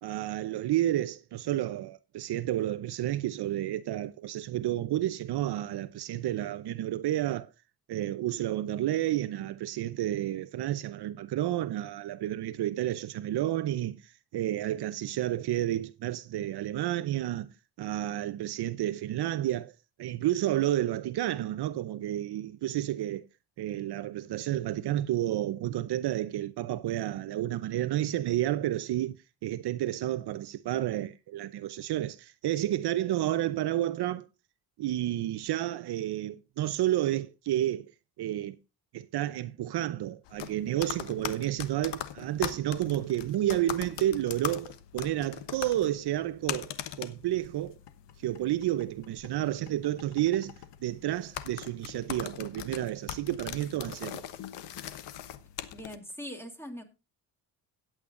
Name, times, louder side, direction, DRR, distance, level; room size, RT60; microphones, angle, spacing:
voice 1, 0.0-7.5 7.9-17.5 17.8-19.7 20.0-23.3 23.6-29.2 29.4-34.3 34.8-37.9 38.2-38.6 38.9-47.7 48.2-50.5 50.8-54.2, right 13 dB, 65° right, 0.8 m, -31 dB
sound 1, 40.3-56.0, left 11 dB, 75° left, 1.1 m, -41 dB
voice 2, 55.7-56.8, equal, 5° left, 2.8 m, -41 dB
16.5 x 8.8 x 2.5 m
cardioid pair, 95°, 42 cm